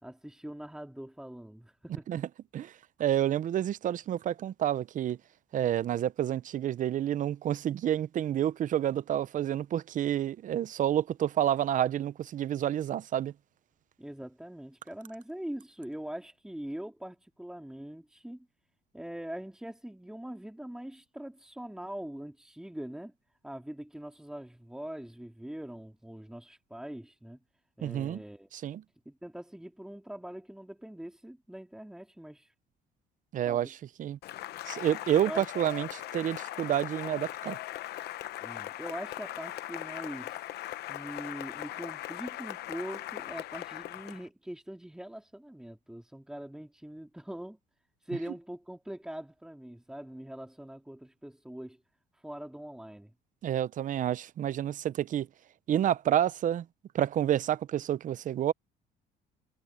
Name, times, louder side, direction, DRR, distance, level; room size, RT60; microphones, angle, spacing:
voice 1, 0.0-2.1 14.0-18.5 18.9-23.1 23.4-27.4 27.8-28.5 29.0-32.5 33.5-33.8 35.2-35.4 38.4-40.4 40.9-47.6 48.0-51.8 52.1-53.1, right 1 dB, 5° right, 2.6 m, -42 dB
voice 2, 3.0-5.2 5.5-13.3 27.8-28.2 28.5-28.8 33.3-34.2 34.7-37.6 53.4-55.3 55.7-56.7 56.9-58.5, right 11 dB, 50° right, 0.7 m, -29 dB
Cheering / Applause, 34.2-44.3, left 15 dB, 75° left, 0.9 m, -39 dB
cardioid pair, 110°, 17 cm